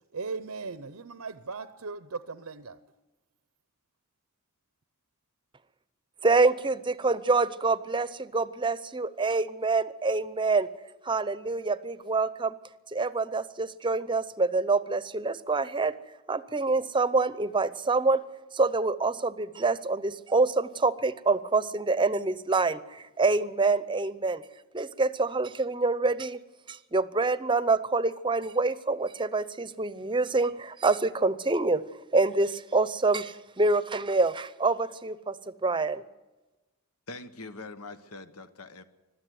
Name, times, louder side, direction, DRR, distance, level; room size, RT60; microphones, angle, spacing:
voice 1, 0.1-2.8, right 4 dB, 90° right, 0.8 m, -38 dB
voice 2, 6.2-10.7 11.0-12.6 12.9-15.9 16.3-18.2 18.5-24.4 24.7-26.4 26.7-31.8 32.1-36.0, right 3 dB, 20° right, 0.7 m, -26 dB
voice 3, 37.1-38.8, left 3 dB, 85° left, 1.2 m, -43 dB
21.5 x 13.0 x 9.4 m
head